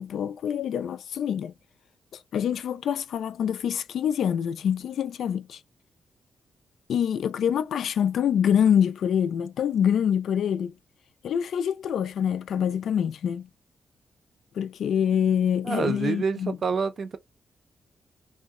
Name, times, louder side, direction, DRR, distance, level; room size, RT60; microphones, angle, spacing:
voice 1, 0.0-1.5 2.1-5.6 6.9-10.7 11.2-13.5 14.5-16.6, left 8 dB, 80° left, 0.3 m, -25 dB
voice 2, 15.6-17.2, right 5 dB, 50° right, 0.5 m, -27 dB
2.7 x 2.1 x 3.6 m
cardioid pair, 115°, 0 cm